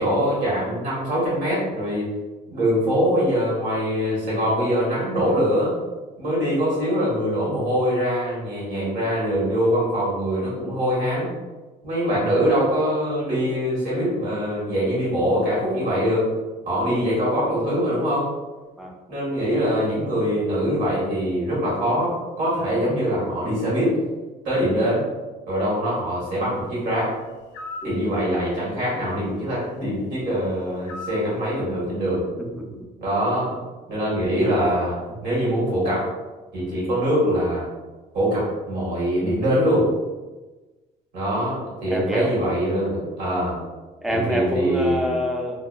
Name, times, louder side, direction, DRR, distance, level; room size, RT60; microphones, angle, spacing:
voice 1, 0.0-2.1 2.5-5.7 6.2-11.3 11.8-16.3 16.6-18.3 19.1-24.0 24.4-25.1 25.5-27.1 27.8-32.2 33.0-33.5 33.9-35.0 35.2-36.1 36.5-37.7 38.1-39.9 41.1-43.6 44.1-45.1, equal, 85° right, -6 dB, 1.5 m, -23 dB
sound 1, 27.5-27.9 30.9-31.3, left 2 dB, 80° left, 0.4 m, -35 dB
voice 2, 27.8-28.1 32.4-32.9 41.9-42.3 44.0-45.7, equal, ahead, 0 dB, 0.4 m, -27 dB
2.8 x 2.2 x 2.3 m, 1.2 s
cardioid pair, 110°, 17 cm